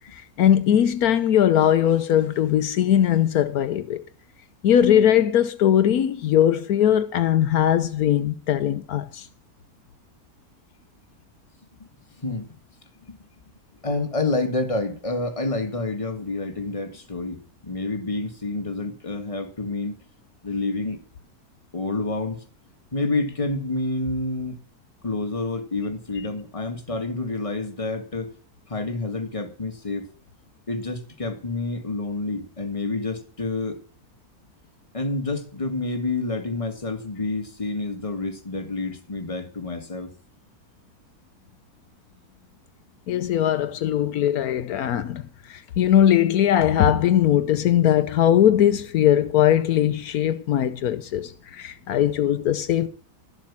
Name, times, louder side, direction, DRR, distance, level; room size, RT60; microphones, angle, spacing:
voice 1, 0.1-4.0 4.6-9.3 43.1-52.9, left 10 dB, 80° left, 1.2 m, -20 dB
voice 2, 13.8-20.0 20.4-21.0 21.7-22.4 22.9-24.6 25.0-28.3 28.7-30.1 30.7-33.8 34.9-40.1, left 2 dB, 20° left, 1.7 m, -28 dB
13.0 x 7.5 x 7.3 m
omnidirectional pair, 1.6 m